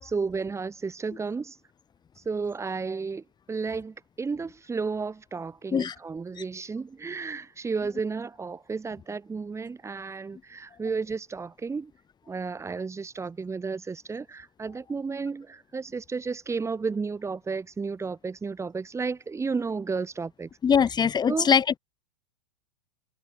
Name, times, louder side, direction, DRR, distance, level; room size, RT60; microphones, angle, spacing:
voice 1, 0.0-1.6 2.2-11.9 12.3-20.5 21.3-21.5, right 4 dB, 15° right, 4.5 m, -32 dB
voice 2, 20.6-21.8, left 7 dB, 20° left, 3.8 m, -22 dB
hypercardioid pair, 100°, 19 cm